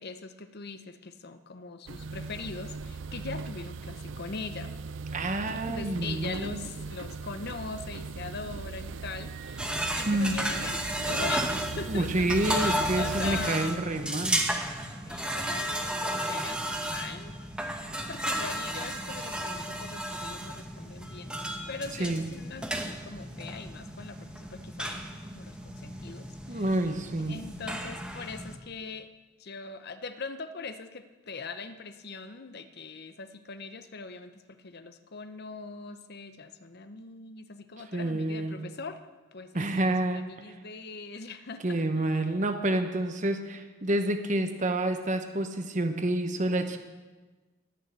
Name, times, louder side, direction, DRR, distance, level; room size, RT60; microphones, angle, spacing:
voice 1, 0.0-4.8 5.7-13.8 15.1-17.5 18.1-21.4 21.7-26.7 27.3-29.1 29.4-39.0 39.3-42.3, left 4 dB, 50° left, 10 dB, 0.8 m, -41 dB
sound 1, 1.9-13.5, right 4 dB, 60° right, 0.5 m, -39 dB
voice 2, 5.1-6.6 10.1-10.3 11.9-14.4 22.0-22.2 26.5-27.4 37.9-38.6 39.5-40.2 41.6-46.8, right 1 dB, 35° right, 7 dB, 1.0 m, -28 dB
Wind instrument woodwind instrument, 8.9-12.4, right 5 dB, 75° right, 3.2 m, -51 dB
sound 2, 9.6-28.6, right 1 dB, 5° right, 1.0 m, -33 dB
18.0 x 6.5 x 8.1 m, 1.3 s
head